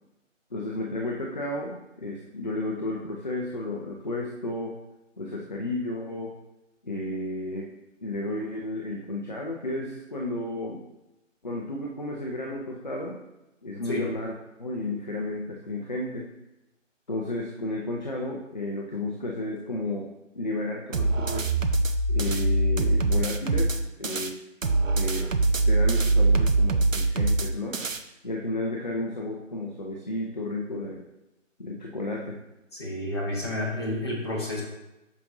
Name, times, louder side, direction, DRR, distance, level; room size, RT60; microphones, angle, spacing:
voice 1, 0.5-4.7 5.2-6.3 6.8-7.7 8.0-10.8 11.4-13.2 13.6-16.3 17.1-20.1 20.3-21.5 22.1-24.4 24.9-25.3 25.7-27.8 28.2-31.0 31.6-32.4, left 2 dB, 35° left, -2 dB, 0.7 m, -32 dB
sound 1, 20.9-24.3 24.6-28.0, right 2 dB, 75° right, 0.8 m, -23 dB
voice 2, 32.7-34.6, left 1 dB, 20° left, -4 dB, 1.3 m, -30 dB
8.5 x 6.0 x 2.7 m, 0.94 s
figure-of-eight pair, 160°, 39 cm